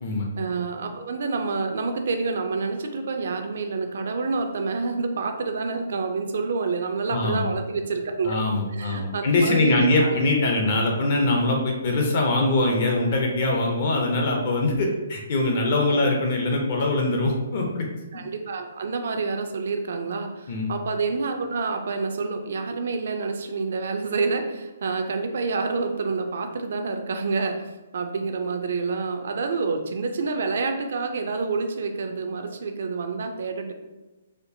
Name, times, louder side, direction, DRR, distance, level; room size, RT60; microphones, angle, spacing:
voice 1, 0.4-8.4 8.7-10.2 15.9-16.0 18.1-27.6 27.9-33.7, right 4 dB, 50° right, 6 dB, 0.4 m, -28 dB
voice 2, 7.1-7.5 8.2-17.9 18.1-18.2 20.5-20.7, left 2 dB, 35° left, 0 dB, 0.5 m, -23 dB
4.3 x 2.4 x 2.7 m, 1.1 s
hypercardioid pair, 175°, 0 cm